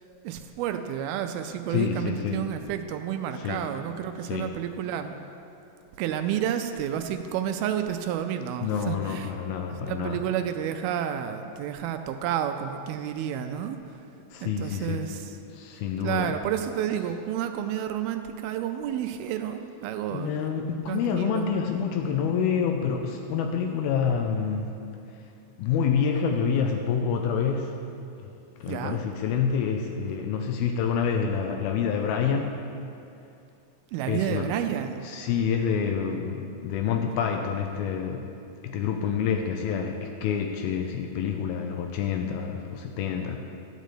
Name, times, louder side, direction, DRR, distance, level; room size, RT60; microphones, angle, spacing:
voice 1, 0.2-5.1 6.0-9.3 9.7-13.8 14.4-15.4 16.0-20.4 20.9-21.5 28.7-29.0 33.9-35.0, right 10 dB, 80° right, 7 dB, 2.3 m, -30 dB
voice 2, 1.7-2.4 3.4-3.6 4.2-4.5 8.6-10.2 14.3-15.1 15.5-16.3 20.1-24.8 25.6-27.8 28.2-28.3 28.6-32.6 34.1-34.5 35.0-38.3 38.6-43.4, left 7 dB, 80° left, 4 dB, 2.4 m, -27 dB
12.5 x 5.1 x 8.3 m, 2.6 s
omnidirectional pair, 4.5 m